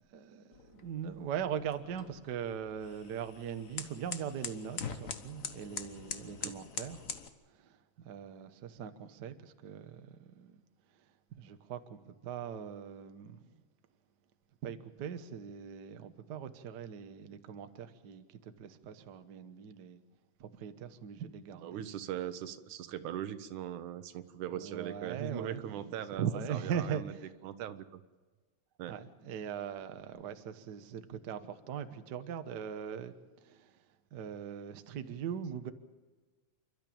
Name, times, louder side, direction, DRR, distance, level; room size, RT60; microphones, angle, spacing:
voice 1, 0.1-7.1 7.5-10.6 11.3-13.6 14.6-20.0 20.4-21.9 24.5-27.3 28.9-33.1 33.4-33.8 34.1-35.7, right 8 dB, 55° right, 1.2 m, -40 dB
sound 1, 0.5-7.3, left 6 dB, 65° left, 0.8 m, -44 dB
voice 2, 21.6-27.1 27.4-28.0 28.8-29.0, right 10 dB, 90° right, 2.5 m, -40 dB
29.0 x 12.5 x 8.7 m
omnidirectional pair, 3.4 m